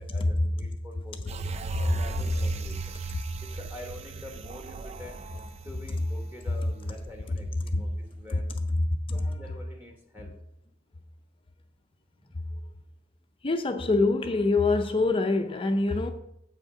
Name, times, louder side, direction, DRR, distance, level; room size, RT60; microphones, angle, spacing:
voice 1, 0.0-1.4 1.8-3.0 3.4-5.2 5.6-8.7 9.1-10.4 12.2-12.4, left 1 dB, 10° right, 1.2 m, -46 dB
sound 1, 1.3-6.9 7.3-7.4, right 4 dB, 30° right, 0.4 m, -37 dB
voice 2, 13.4-16.1, left 3 dB, 25° left, 0.5 m, -25 dB
7.9 x 6.2 x 4.8 m
head